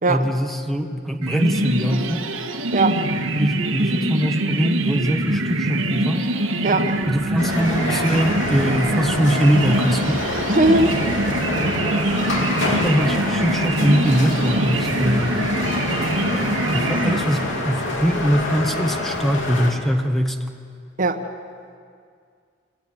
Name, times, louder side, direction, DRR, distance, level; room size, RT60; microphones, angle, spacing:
voice 1, 0.1-2.3 3.3-6.3 7.1-10.2 12.7-15.4 16.7-20.4, equal, ahead, 4 dB, 1.1 m, -22 dB
sound 1, 1.2-17.8, right 1 dB, 85° right, 1.6 m, -24 dB
voice 2, 2.7-3.0 6.6-7.0 10.5-11.0 21.0-21.3, right 2 dB, 45° right, 7 dB, 1.2 m, -19 dB
sound 2, 7.4-19.7, left 1 dB, 70° left, 3.1 m, -26 dB
26.0 x 17.5 x 8.0 m, 2.2 s
head